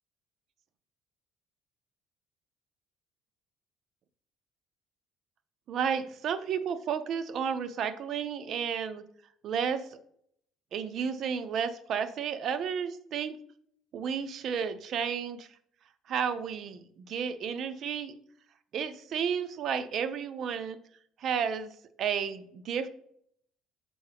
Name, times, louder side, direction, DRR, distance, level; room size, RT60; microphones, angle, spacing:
voice 1, 5.7-9.0 9.4-9.8 10.7-13.4 13.9-15.5 16.1-18.1 18.7-20.8 21.2-21.7 22.0-22.9, right 7 dB, 50° right, 11 dB, 0.5 m, -32 dB
6.9 x 4.5 x 3.4 m, 0.69 s
cardioid pair, 135°, 0 cm